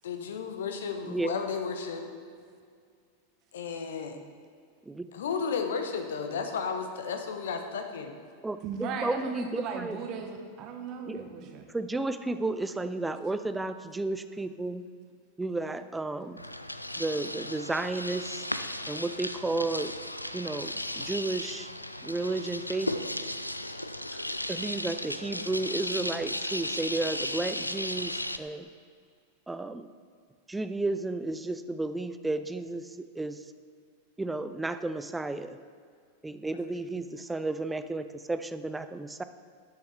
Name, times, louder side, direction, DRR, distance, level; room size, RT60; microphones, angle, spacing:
voice 1, 0.0-2.1 3.5-4.2 5.1-8.1, left 5 dB, 60° left, 6 dB, 0.9 m, -33 dB
voice 2, 1.1-1.4 4.9-5.1 8.4-10.0 11.1-14.8 15.4-16.4 17.0-18.5 18.9-19.9 20.3-21.7 22.0-22.9 24.1-28.7 29.5-29.9 30.5-33.4 34.2-35.6 36.2-39.2, right 2 dB, 10° right, 11 dB, 0.4 m, -33 dB
voice 3, 8.6-11.6, right 5 dB, 40° right, 4 dB, 1.0 m, -37 dB
sound 1, 16.4-28.4, left 1 dB, 85° left, 0.3 m, -35 dB
12.0 x 6.8 x 3.4 m, 2.2 s
figure-of-eight pair, 90°, 0 cm